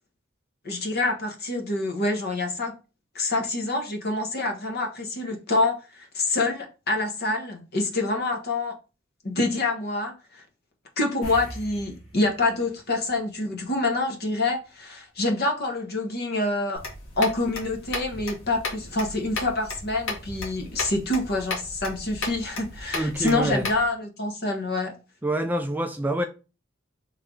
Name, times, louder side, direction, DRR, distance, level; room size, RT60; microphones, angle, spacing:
voice 1, 0.6-2.7 3.1-8.7 9.2-10.4 11.0-16.8 17.2-24.9, left 2 dB, 55° left, 1.0 m, -26 dB
sound 1, 11.2-14.0 14.3-14.5 17.4-17.5 17.8-17.9, right 1 dB, 70° left, 1.5 m, -43 dB
sound 2, 16.8-23.9, left 3 dB, 85° left, 1.5 m, -35 dB
voice 2, 22.9-23.6 25.2-26.2, right 1 dB, 10° right, 0.3 m, -26 dB
3.3 x 3.2 x 3.6 m
head